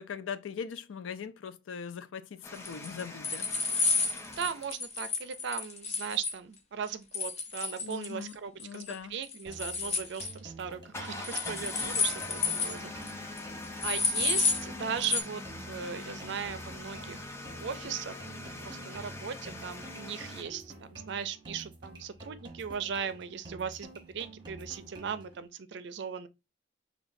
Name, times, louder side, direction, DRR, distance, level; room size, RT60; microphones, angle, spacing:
voice 1, 0.0-3.5 7.8-8.4 8.6-9.2, left 6 dB, 85° left, 0.4 m, -40 dB
sound 1, 2.4-4.7 10.9-20.4, left 2 dB, 15° left, 0.4 m, -42 dB
sound 2, 2.7-6.3 7.1-8.3 8.6-8.9 9.2-10.3 11.2-12.8 13.1-13.2 13.4-13.5 13.8-14.6 15.0-15.2, left 4 dB, 35° left, 0.8 m, -31 dB
voice 2, 4.3-13.4 13.8-18.2 18.6-26.3, right 7 dB, 60° right, 0.4 m, -38 dB
sound 3, 9.5-25.5, right 2 dB, 25° right, 1.0 m, -49 dB
5.8 x 2.3 x 2.6 m
head